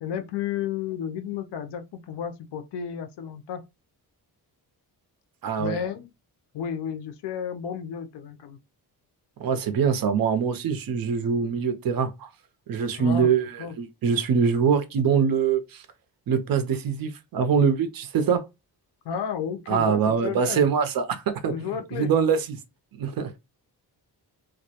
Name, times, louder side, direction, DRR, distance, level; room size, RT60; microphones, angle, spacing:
voice 1, 0.0-3.6 5.6-6.1 6.5-8.6 13.0-13.7 19.0-20.6 21.5-22.1, left 8 dB, 85° left, 0.5 m, -32 dB
voice 2, 5.4-5.8 9.4-12.3 12.7-15.8 16.3-18.4 19.7-22.4 23.0-23.4, right 6 dB, 60° right, 0.5 m, -24 dB
2.2 x 2.0 x 2.7 m
wide cardioid pair, 170°, 40 cm